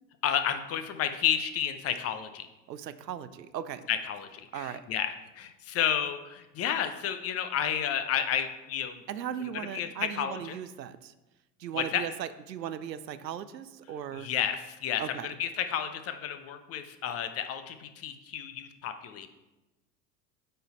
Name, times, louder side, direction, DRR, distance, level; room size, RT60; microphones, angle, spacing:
voice 1, 0.2-2.5 3.9-9.0 9.5-10.6 11.7-12.0 14.1-19.3, left 9 dB, 30° left, 9 dB, 0.6 m, -31 dB
voice 2, 2.7-3.8 4.5-4.8 9.1-11.1 11.6-14.3 15.0-15.3, right 9 dB, 85° right, 12 dB, 0.6 m, -37 dB
9.3 x 3.9 x 4.1 m, 1.0 s
figure-of-eight pair, 80°, 49 cm